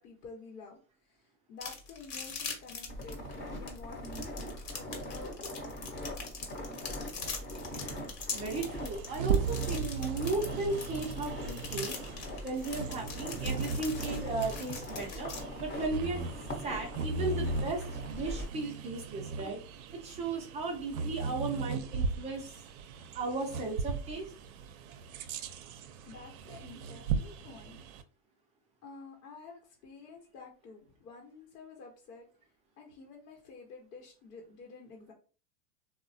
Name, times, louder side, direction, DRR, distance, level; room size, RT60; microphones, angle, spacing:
voice 1, 0.0-3.2 3.6-4.3 4.7-5.6 26.0-27.8 28.8-32.3 32.8-35.1, left 4 dB, 75° left, 0 dB, 0.9 m, -50 dB
sound 1, 1.6-15.4, left 5 dB, 50° left, 1.1 m, -41 dB
sound 2, 2.9-18.5, equal, 20° left, 0.8 m, -42 dB
voice 2, 8.3-12.0 12.4-15.3 15.6-16.2 16.6-17.8 18.1-19.6 19.9-22.5 23.1-24.2, right 3 dB, 15° right, 1 dB, 0.4 m, -35 dB
Bird vocalization bird call bird song, 8.6-28.0, right 5 dB, 65° right, 0.5 m, -37 dB
3.1 x 2.1 x 2.6 m, 0.38 s
supercardioid pair, 125°, 46 cm